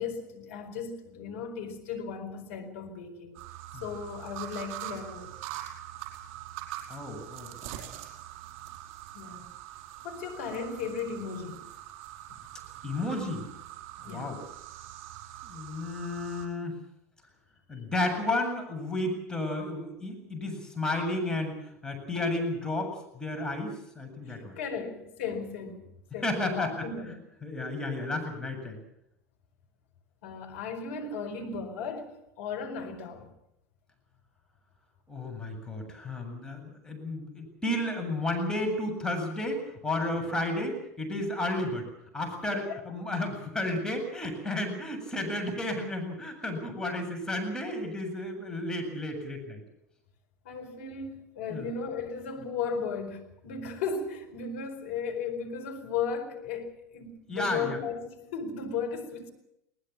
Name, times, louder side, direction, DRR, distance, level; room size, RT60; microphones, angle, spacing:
voice 1, 0.0-3.4 3.8-5.3 9.1-9.5 10.0-11.7 14.1-14.3 24.3-27.2 30.2-32.1 32.4-33.3 42.5-42.8 50.4-59.3, left 5 dB, 65° left, 4.5 m, -36 dB
sound 1, 3.3-16.5, right 13 dB, 55° right, 5.0 m, -43 dB
voice 2, 6.9-7.8 12.8-13.5 14.0-14.4 15.4-16.7 17.7-24.6 26.2-26.8 27.4-28.8 35.1-49.6 51.5-51.7 57.3-57.8, left 1 dB, 10° left, 7.8 m, -32 dB
21.0 x 19.5 x 7.4 m
figure-of-eight pair, 80°, 8 cm